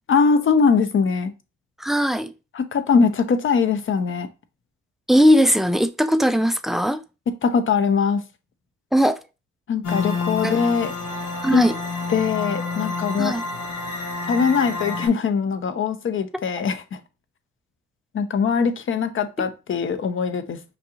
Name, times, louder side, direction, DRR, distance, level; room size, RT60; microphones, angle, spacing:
voice 1, 0.1-1.3 2.5-4.3 7.3-8.2 9.7-10.9 11.5-11.6 12.1-13.3 14.3-17.0 18.1-20.6, left 5 dB, 45° left, 0.7 m, -21 dB
voice 2, 1.8-2.3 5.1-7.0 8.9-9.2 10.4-10.6 11.4-11.8 13.2-13.4 19.4-19.5, equal, ahead, 0.3 m, -19 dB
sound 1, 9.8-15.1, left 3 dB, 75° left, 1.6 m, -29 dB
5.4 x 2.6 x 2.8 m
cardioid pair, 90°, 30 cm